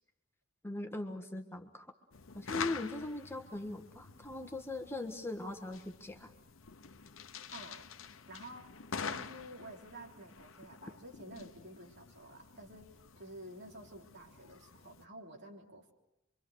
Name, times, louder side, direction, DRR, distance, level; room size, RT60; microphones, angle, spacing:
voice 1, 0.6-1.9 2.3-6.3, left 2 dB, 10° left, 5 dB, 1.5 m, -40 dB
sound 1, 2.1-15.1, left 6 dB, 85° left, 1.0 m, -47 dB
voice 2, 7.5-7.9 8.3-8.7 9.1-15.9, right 1 dB, 60° right, 1 dB, 3.4 m, -51 dB
26.0 x 25.0 x 6.4 m, 0.87 s
head